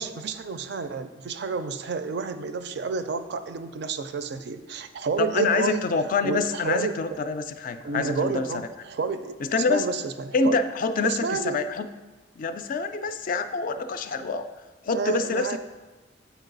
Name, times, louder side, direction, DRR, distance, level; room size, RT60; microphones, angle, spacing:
voice 1, 0.0-5.8 6.2-7.2 7.8-9.4 9.7-10.6 11.0-11.7 14.9-15.6, right 5 dB, 55° right, 10 dB, 0.4 m, -30 dB
voice 2, 5.2-8.7 9.4-9.9 10.3-11.9 12.4-14.5 14.8-15.6, left 4 dB, 45° left, 10 dB, 0.3 m, -26 dB
8.0 x 4.6 x 3.9 m, 1.2 s
head